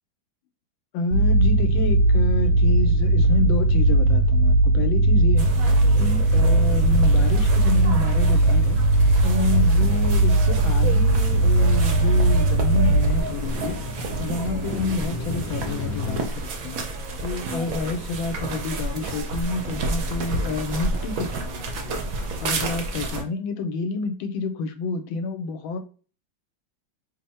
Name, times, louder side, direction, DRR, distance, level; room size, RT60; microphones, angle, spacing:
voice 1, 0.9-8.8 9.2-13.8 14.2-22.0 22.4-25.8, left 3 dB, 80° left, 1.3 m, -29 dB
sound 1, 1.1-13.2, right 2 dB, 90° right, 1.5 m, -18 dB
sound 2, 5.4-23.2, right 2 dB, 70° right, 0.8 m, -31 dB
sound 3, 7.4-16.2, left 2 dB, 50° left, 0.8 m, -36 dB
3.4 x 2.1 x 4.1 m
omnidirectional pair, 2.2 m